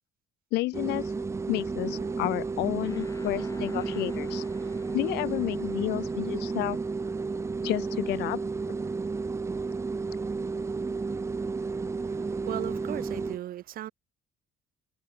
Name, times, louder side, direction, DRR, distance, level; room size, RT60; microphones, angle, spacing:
voice 1, 0.5-1.1 1.5-4.4 4.9-6.8 7.6-8.4, left 20 dB, 80° left, 0.4 m, -31 dB
sound 1, 0.7-13.4, right 4 dB, 15° right, 0.5 m, -32 dB
sound 2, 2.0-12.3, right 7 dB, 40° right, 1.9 m, -54 dB
sound 3, 2.8-7.7, left 3 dB, 20° left, 3.1 m, -53 dB
voice 2, 12.0-13.9, right 13 dB, 60° right, 1.0 m, -37 dB
cardioid pair, 110°, 17 cm